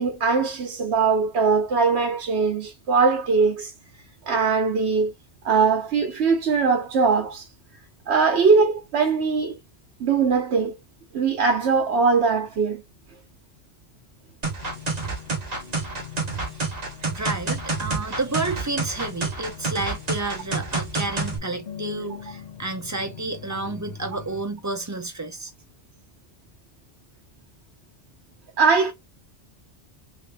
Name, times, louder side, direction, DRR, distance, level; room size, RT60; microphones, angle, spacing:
voice 1, 0.0-3.7 4.3-5.1 5.4-7.5 8.1-9.6 10.0-10.8 11.1-12.8 28.6-28.9, right 5 dB, 75° right, 1.0 m, -21 dB
sound 1, 14.4-21.4, right 3 dB, 40° right, 1.1 m, -28 dB
sound 2, 14.6-24.4, left 8 dB, 60° left, 1.2 m, -42 dB
voice 2, 17.1-25.5, right 2 dB, 20° right, 0.5 m, -30 dB
3.5 x 2.6 x 3.4 m
omnidirectional pair, 1.1 m